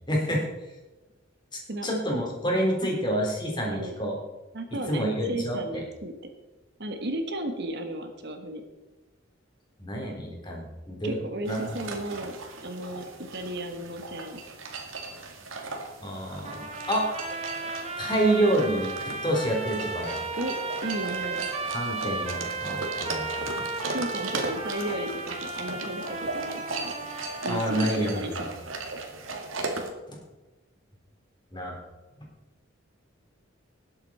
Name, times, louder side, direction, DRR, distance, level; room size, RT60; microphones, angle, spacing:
voice 1, 0.1-0.5 1.8-4.2 4.9-5.8 9.8-11.2 11.5-11.7 16.0-17.1 18.0-20.2 21.7-23.3 27.5-28.5 30.1-30.2 31.5-31.8, right 1 dB, 20° left, -1 dB, 3.7 m, -28 dB
voice 2, 4.5-6.1 6.8-8.6 11.0-12.4 12.6-14.4 20.3-21.5 23.9-26.9 27.4-28.5, right 1 dB, 55° right, 6 dB, 1.4 m, -34 dB
sound 1, 11.5-29.9, right 3 dB, 85° right, 2.0 m, -37 dB
sound 2, 16.4-28.0, right 3 dB, 30° right, 1.5 m, -35 dB
19.5 x 8.2 x 4.3 m, 1.2 s
head